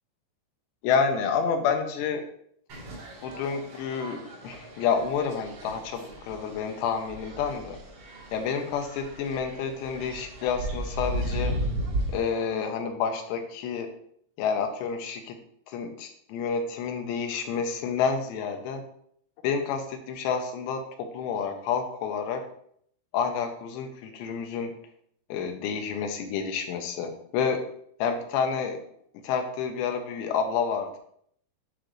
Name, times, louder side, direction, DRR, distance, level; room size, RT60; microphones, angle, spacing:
voice 1, 0.8-2.2 3.2-7.8 8.3-11.6 12.1-13.9 14.4-15.4 15.7-18.8 19.4-22.4 23.1-24.8 25.3-27.7 28.0-28.8 29.2-31.0, left 6 dB, 80° left, 5 dB, 2.9 m, -29 dB
sound 1, 2.7-12.2, right 1 dB, 85° right, 1.3 m, -35 dB
11.5 x 3.8 x 3.1 m, 0.66 s
omnidirectional pair, 5.2 m